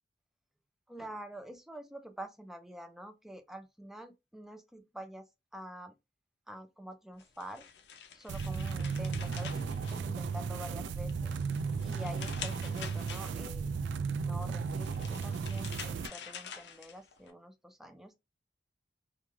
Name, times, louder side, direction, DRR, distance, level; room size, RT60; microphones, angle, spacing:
voice 1, 0.9-5.9 6.5-7.6 8.1-11.4 11.8-18.2, equal, ahead, 0.4 m, -47 dB
sound 1, 7.2-10.6 11.0-13.7 14.6-17.3, left 7 dB, 70° left, 0.5 m, -47 dB
sound 2, 8.3-16.1, right 5 dB, 90° right, 0.3 m, -35 dB
3.0 x 2.3 x 2.4 m
head